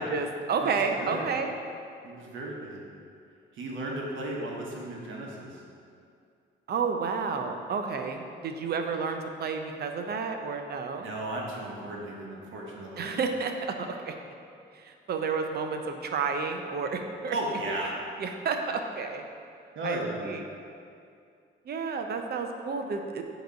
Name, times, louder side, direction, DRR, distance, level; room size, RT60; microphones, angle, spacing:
voice 1, 0.0-1.5 6.7-11.0 13.0-13.5 13.8-14.1 14.8-17.4 18.2-19.2 19.8-20.4 21.7-23.2, right 5 dB, 55° right, 5 dB, 0.7 m, -31 dB
voice 2, 0.6-1.3 2.0-2.9 3.5-5.6 11.0-13.1 17.3-18.0 19.7-20.4, right 1 dB, 75° right, -2 dB, 1.2 m, -35 dB
7.9 x 3.0 x 5.2 m, 2.4 s
cardioid pair, 90°, 20 cm